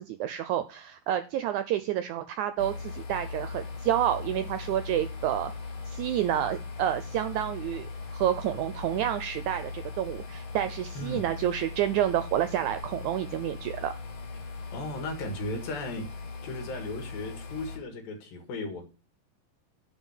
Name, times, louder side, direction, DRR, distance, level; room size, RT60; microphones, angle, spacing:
voice 1, 0.0-5.5 5.9-14.0, right 11 dB, 80° right, 1.7 m, -29 dB
sound 1, 2.6-17.8, left 4 dB, 60° left, 4.5 m, -39 dB
voice 2, 11.0-11.3 14.4-16.1 16.4-18.8, left 2 dB, 85° left, 3.7 m, -36 dB
10.5 x 4.0 x 7.2 m
omnidirectional pair, 4.0 m